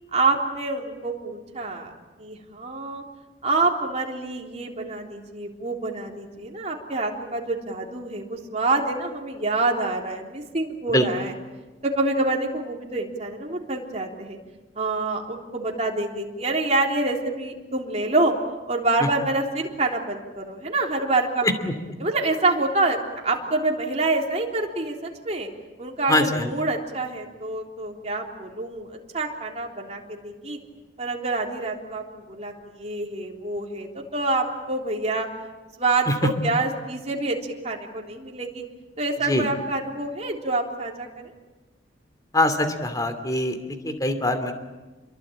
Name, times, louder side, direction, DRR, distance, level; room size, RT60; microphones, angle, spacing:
voice 1, 0.1-1.9 2.2-3.0 3.4-11.3 11.8-14.4 14.8-18.3 18.7-21.4 22.0-25.5 25.8-30.6 31.0-35.3 35.8-38.6 39.0-41.3, right 2 dB, 35° right, 0 dB, 3.6 m, -27 dB
voice 2, 21.4-21.7 26.1-26.5 36.1-36.3 39.2-39.5 42.3-44.5, left 1 dB, 20° left, 8 dB, 2.6 m, -23 dB
28.5 x 23.0 x 8.8 m, 1.2 s
head